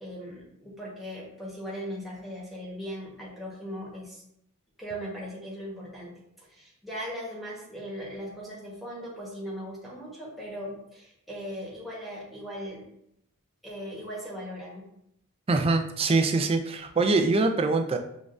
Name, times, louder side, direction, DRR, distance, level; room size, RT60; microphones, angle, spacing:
voice 1, 0.0-4.2 4.8-12.8 13.6-14.9, equal, ahead, -5 dB, 1.1 m, -39 dB
voice 2, 15.5-18.0, right 3 dB, 25° right, 5 dB, 0.4 m, -24 dB
7.1 x 2.4 x 2.5 m, 0.76 s
head